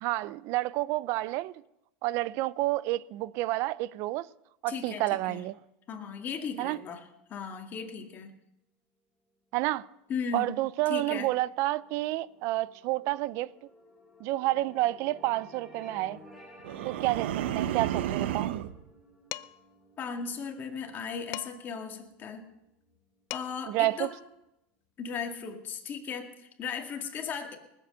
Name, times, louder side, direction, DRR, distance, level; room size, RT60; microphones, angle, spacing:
voice 1, 0.0-1.5 2.0-4.3 4.6-5.5 6.6-6.8 9.5-9.9 10.3-13.5 14.2-16.2 16.8-18.5 23.7-24.1, right 17 dB, 55° right, 0.5 m, -29 dB
voice 2, 4.7-5.4 5.9-7.0 7.3-8.3 10.1-10.5 10.9-11.3 20.0-22.4 23.3-24.1 25.0-27.6, left 6 dB, 35° left, 2.0 m, -36 dB
sound 1, 10.6-22.8, equal, 10° right, 4.0 m, -55 dB
sound 2, 16.6-18.8, right 11 dB, 90° right, 0.8 m, -31 dB
Dishes pots and pans, 19.3-19.7 21.3-21.8 23.0-23.1 23.3-23.8, left 18 dB, 55° left, 0.5 m, -40 dB
19.5 x 7.9 x 6.8 m
supercardioid pair, 140°, 6 cm